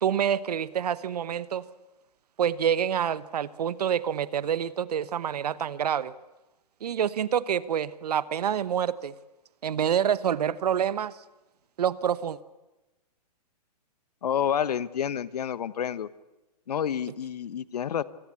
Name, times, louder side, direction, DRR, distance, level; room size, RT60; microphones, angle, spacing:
voice 1, 0.0-1.6 2.4-6.2 6.8-9.1 9.6-11.1 11.8-12.4, right 9 dB, 70° right, 17 dB, 1.1 m, -27 dB
voice 2, 14.2-16.1 16.7-18.0, left 9 dB, 70° left, 17 dB, 1.1 m, -29 dB
26.5 x 19.5 x 8.5 m, 1.1 s
hypercardioid pair, 120°, 21 cm